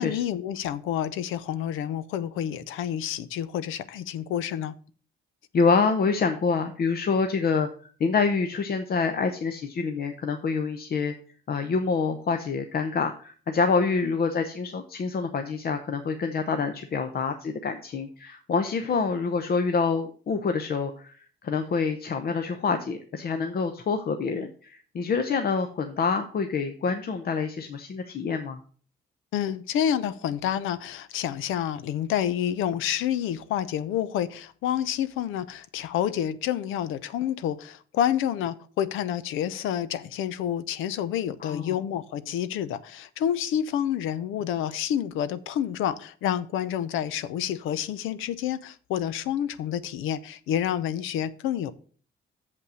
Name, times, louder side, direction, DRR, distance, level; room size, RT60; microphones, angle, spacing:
voice 1, 0.0-4.7 29.3-51.7, left 10 dB, 90° left, 0.6 m, -29 dB
voice 2, 5.5-7.7 8.0-11.1 11.5-28.6 41.4-41.8, left 5 dB, 50° left, 0.9 m, -26 dB
7.0 x 5.5 x 6.2 m
cardioid pair, 90°, 20 cm